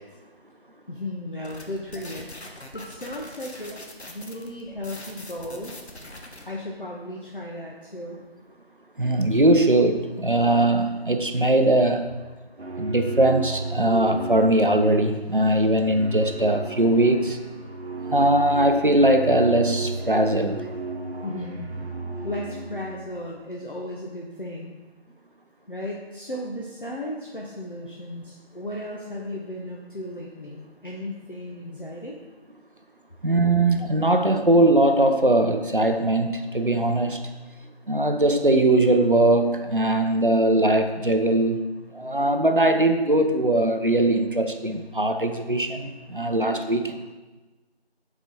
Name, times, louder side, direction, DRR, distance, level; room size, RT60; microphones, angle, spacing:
voice 1, 0.9-3.8 4.1-5.7 6.5-8.2 21.2-21.7 22.2-24.8 25.7-32.2, left 1 dB, 55° left, -2 dB, 0.8 m, -35 dB
sound 1, 1.4-6.4, left 1 dB, 80° left, 1.2 m, -42 dB
voice 2, 9.0-12.1 12.8-17.4 18.1-20.6 33.2-37.2 37.9-41.6 41.9-47.0, right 1 dB, 55° right, 6 dB, 0.6 m, -20 dB
sound 2, 12.6-23.1, right 3 dB, 75° right, 1.0 m, -34 dB
5.7 x 4.4 x 4.6 m, 1.2 s
figure-of-eight pair, 180°, 32 cm